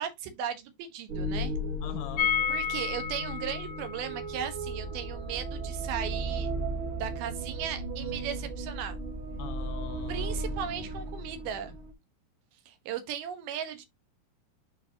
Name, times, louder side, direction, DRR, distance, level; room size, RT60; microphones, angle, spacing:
voice 1, 0.0-1.5 2.5-6.5 7.0-9.0 10.1-11.7 12.7-13.9, right 9 dB, 80° right, 3.0 m, -36 dB
sound 1, 1.1-11.9, right 1 dB, 60° right, 3.5 m, -35 dB
voice 2, 1.8-2.3 9.4-10.9, left 14 dB, 80° left, 2.1 m, -43 dB
sound 2, 2.2-7.9 8.2-8.3 8.6-8.7, left 7 dB, 65° left, 1.5 m, -34 dB
8.6 x 5.1 x 2.8 m
omnidirectional pair, 4.5 m